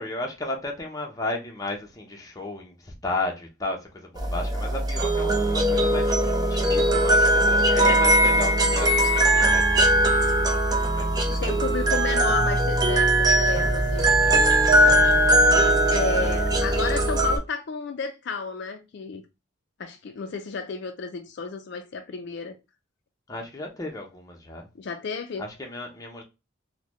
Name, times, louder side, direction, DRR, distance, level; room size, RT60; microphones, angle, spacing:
voice 1, 0.0-10.4 10.9-11.7 14.2-15.1 23.3-24.7 25.4-26.2, left 2 dB, 15° left, 0.7 m, -34 dB
sound 1, 4.2-17.4, right 1 dB, 20° right, 0.5 m, -20 dB
voice 2, 7.7-8.1 11.3-14.0 15.9-19.2 19.8-22.5 24.7-25.4, left 5 dB, 55° left, 0.4 m, -32 dB
3.7 x 2.1 x 3.0 m
head